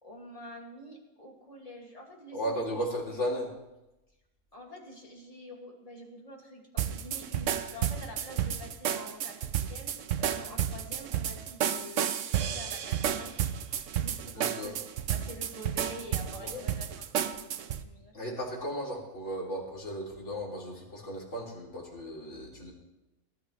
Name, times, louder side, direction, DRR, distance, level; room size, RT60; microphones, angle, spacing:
voice 1, 0.0-2.9 4.5-13.3 14.0-14.8 15.1-18.2, equal, 25° left, -1 dB, 2.6 m, -47 dB
voice 2, 2.3-3.5 14.3-14.7 16.4-16.6 18.1-22.7, equal, 60° left, -3 dB, 3.7 m, -35 dB
sound 1, 6.8-17.8, right 9 dB, 70° right, 1.0 m, -32 dB
20.0 x 12.5 x 3.3 m, 0.97 s
omnidirectional pair, 1.4 m